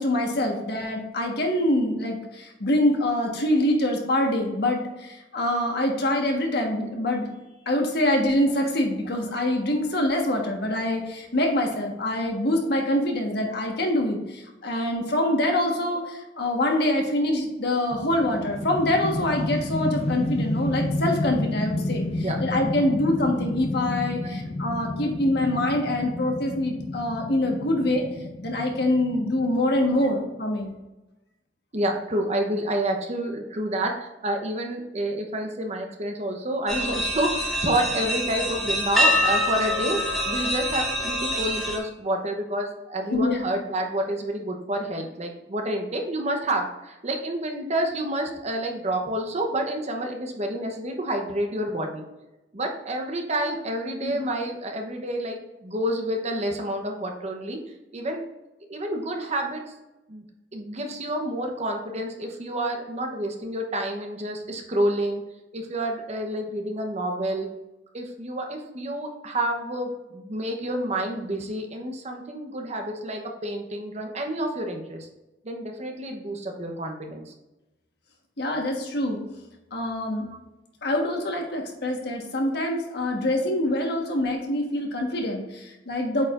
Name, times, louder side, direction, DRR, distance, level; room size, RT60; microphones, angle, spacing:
voice 1, 0.0-7.3 7.6-28.1 28.4-30.7 43.1-43.4 54.0-54.2 78.4-79.2 79.7-80.3 80.8-86.2, left 1 dB, 65° left, 1 dB, 1.4 m, -25 dB
sound 1, 17.9-30.1, left 1 dB, 35° left, 0.5 m, -31 dB
voice 2, 31.7-52.0 52.5-57.6 57.9-58.2 58.7-59.6 60.1-60.2 60.5-65.2 65.5-67.5 67.9-75.1 75.4-77.3 80.1-80.4 83.8-84.1, right 1 dB, 40° right, 3 dB, 0.9 m, -29 dB
sound 2, 36.7-41.8, equal, ahead, 2.1 m, -25 dB
8.0 x 5.0 x 2.5 m, 1.0 s
head